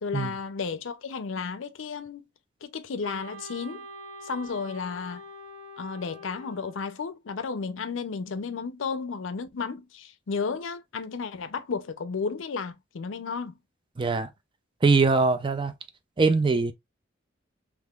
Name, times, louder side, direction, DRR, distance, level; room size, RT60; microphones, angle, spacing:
voice 1, 0.0-2.2 2.6-3.8 4.2-5.2 5.8-13.6, left 5 dB, 85° left, 0.5 m, -33 dB
Wind instrument woodwind instrument, 3.0-7.0, equal, 70° right, 0.8 m, -44 dB
voice 2, 14.0-14.3 14.8-15.7 16.2-16.7, right 4 dB, 25° right, 0.4 m, -22 dB
3.6 x 3.0 x 2.3 m
head